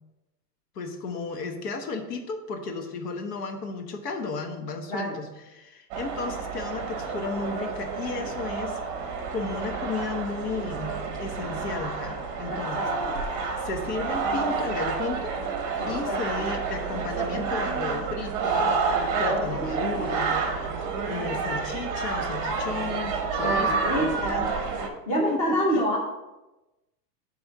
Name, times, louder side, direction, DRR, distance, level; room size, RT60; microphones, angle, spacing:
voice 1, 0.7-9.1 9.3-12.9 13.6-15.3 15.9-18.8 19.2-20.7 21.0-24.5 25.1-25.6, left 4 dB, 70° left, 5 dB, 1.3 m, -34 dB
sound 1, 5.9-24.9, right 4 dB, 25° right, 0.7 m, -29 dB
voice 2, 12.5-13.2 15.8-16.4 19.2-20.2 23.4-24.5 25.1-26.0, equal, 15° left, -3 dB, 0.7 m, -28 dB
10.5 x 3.5 x 4.6 m, 1.0 s
supercardioid pair, 175°, 50 cm